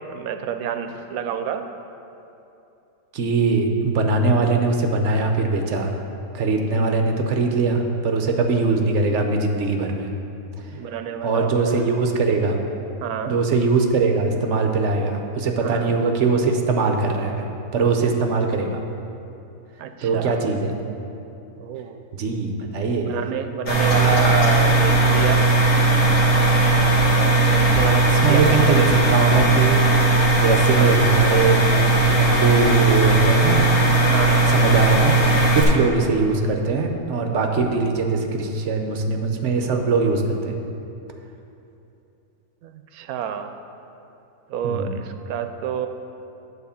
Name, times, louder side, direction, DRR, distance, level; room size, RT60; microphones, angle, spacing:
voice 1, 0.1-1.6 6.8-6.9 10.7-11.9 13.0-13.4 15.6-15.9 19.8-20.4 21.6-22.0 23.0-25.5 26.4-29.0 30.7-31.0 34.1-34.6 42.6-43.5 44.5-45.9, right 8 dB, 80° right, 8 dB, 1.0 m, -29 dB
voice 2, 3.1-5.9 6.3-10.1 11.2-12.6 13.3-17.5 17.7-18.8 20.0-20.7 22.1-23.2 28.1-29.9 30.3-31.7 32.1-33.6 33.9-34.2 34.5-35.1 35.5-40.6 44.6-45.0, right 4 dB, 60° right, 4 dB, 1.0 m, -21 dB
sound 1, 23.7-35.6, right 2 dB, 85° left, 1.8 m, -17 dB
9.4 x 4.3 x 6.9 m, 2.8 s
omnidirectional pair, 1.5 m